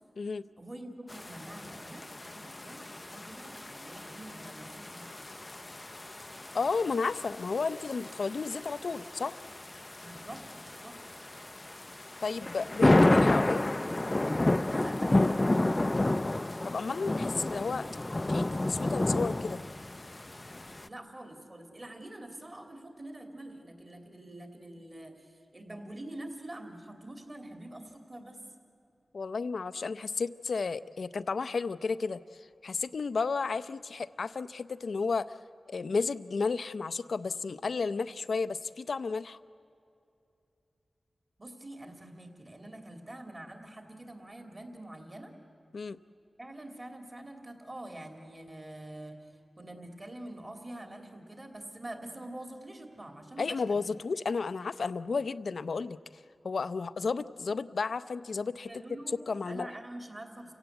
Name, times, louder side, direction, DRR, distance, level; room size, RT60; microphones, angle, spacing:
voice 1, 0.6-5.2 10.0-11.0 14.6-15.4 20.8-28.4 41.4-45.3 46.4-53.8 58.7-59.2 59.5-60.5, right 1 dB, 30° right, 4 dB, 3.0 m, -45 dB
sound 1, 1.1-20.9, left 2 dB, 25° left, 0.5 m, -31 dB
voice 2, 6.5-9.4 12.2-13.6 16.6-17.9 18.3-19.6 29.1-32.2 32.6-35.3 35.7-39.4 45.7-46.0 53.4-58.7 59.3-59.7, left 4 dB, 75° left, 14 dB, 0.6 m, -32 dB
29.0 x 17.0 x 8.1 m, 2.7 s
wide cardioid pair, 75°, 0 cm